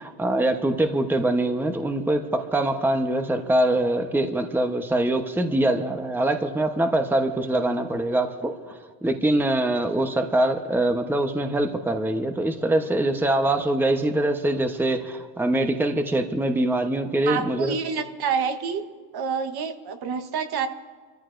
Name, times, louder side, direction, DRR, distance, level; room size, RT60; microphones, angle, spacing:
voice 1, 0.0-17.8, right 1 dB, 5° right, 6 dB, 0.9 m, -23 dB
voice 2, 17.3-18.8 19.1-20.7, right 6 dB, 50° right, 7 dB, 1.3 m, -27 dB
27.5 x 14.0 x 2.6 m, 1.5 s
supercardioid pair, 100°, 49 cm